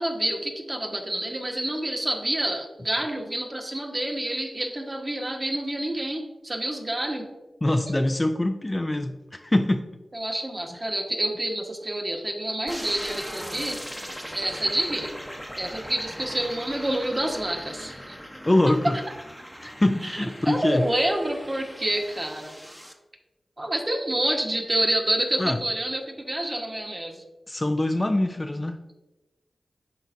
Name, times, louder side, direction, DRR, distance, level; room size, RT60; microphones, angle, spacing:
voice 1, 0.0-7.3 10.1-13.8 14.3-15.1 15.6-18.2 18.9-19.0 20.1-22.5 23.6-27.2, right 1 dB, 30° right, 1.4 m, -28 dB
voice 2, 7.6-9.9 18.4-19.0 19.6-20.9 25.4-25.6 27.5-28.9, left 1 dB, 25° left, 0.4 m, -24 dB
sound 1, 12.7-22.9, equal, ahead, 0.9 m, -40 dB
11.0 x 3.9 x 2.7 m
cardioid pair, 45°, 0 cm